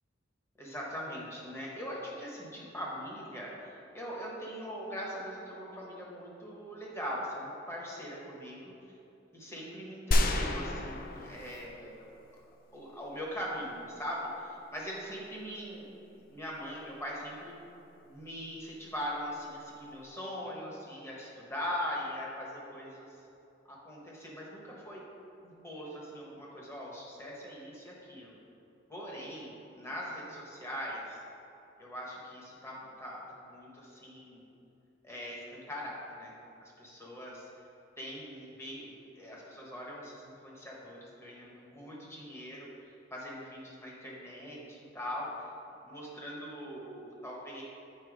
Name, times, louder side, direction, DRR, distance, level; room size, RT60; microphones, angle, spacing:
voice 1, 0.6-8.7 9.3-12.1 12.7-17.5 18.0-23.2 23.7-25.0 25.4-28.4 28.9-31.2 31.8-34.4 35.0-36.3 36.8-37.5 38.0-38.9 39.1-42.7 43.1-45.5 45.8-47.6, equal, 15° left, -4 dB, 1.2 m, -41 dB
sound 1, 10.1-12.0 12.4-12.5, left 1 dB, 45° left, 0.4 m, -30 dB
7.7 x 4.4 x 5.0 m, 2.8 s
head